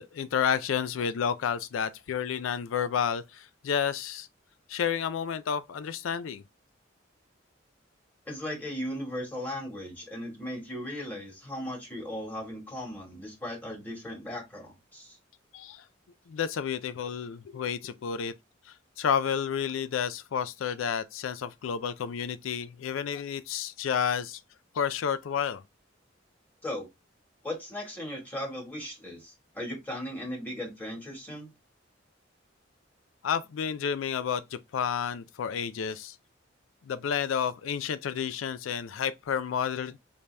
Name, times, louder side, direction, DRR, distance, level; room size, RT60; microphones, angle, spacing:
voice 1, 0.0-4.3 4.7-6.4 15.5-15.8 16.3-18.3 19.0-24.4 24.7-25.6 33.2-36.2 36.9-40.0, left 7 dB, 85° left, 0.4 m, -30 dB
voice 2, 8.3-15.2 26.6-26.9 27.4-31.5, left 1 dB, 10° left, 1.7 m, -37 dB
5.0 x 2.8 x 3.3 m
head